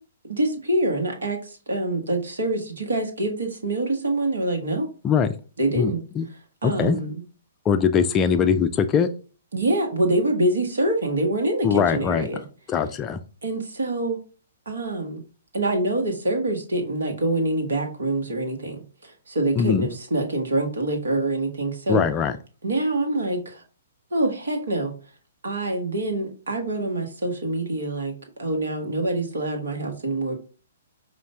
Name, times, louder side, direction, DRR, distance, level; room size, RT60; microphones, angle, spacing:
voice 1, 0.3-4.9 5.6-6.0 6.6-7.2 9.5-12.4 13.4-14.2 14.7-15.2 15.5-22.0 22.6-23.6 24.1-24.9 25.4-28.1 28.4-30.4, right 1 dB, 75° right, 4 dB, 1.2 m, -25 dB
voice 2, 5.8-6.3 6.6-7.0 7.7-9.1 11.6-12.3 12.7-13.2 19.6-19.9 21.9-22.4, left 7 dB, 20° left, 9 dB, 0.4 m, -21 dB
5.2 x 2.5 x 3.4 m, 0.37 s
figure-of-eight pair, 125°, 0 cm